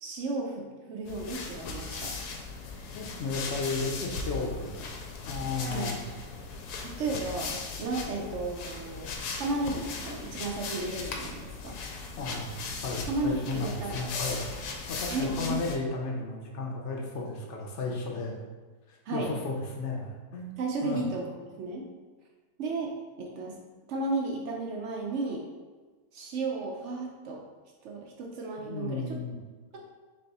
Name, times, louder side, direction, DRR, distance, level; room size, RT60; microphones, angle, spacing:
voice 1, 0.0-2.1 5.7-5.9 6.8-9.1 9.4-11.8 13.1-14.1 15.1-15.6 19.1-19.3 20.6-21.9 22.6-23.6 23.9-25.5 26.1-27.4 27.8-29.1 29.7-29.9, right 3 dB, 70° right, 1 dB, 0.7 m, -34 dB
sound 1, 1.1-15.8, left 4 dB, 80° left, 1.1 m, -38 dB
voice 2, 2.9-4.8 5.3-6.0 12.2-12.5 12.8-18.4 18.9-20.6 20.8-21.0 28.6-29.4, left 3 dB, 60° left, -1 dB, 0.8 m, -34 dB
3.4 x 3.3 x 4.0 m, 1.3 s
omnidirectional pair, 1.7 m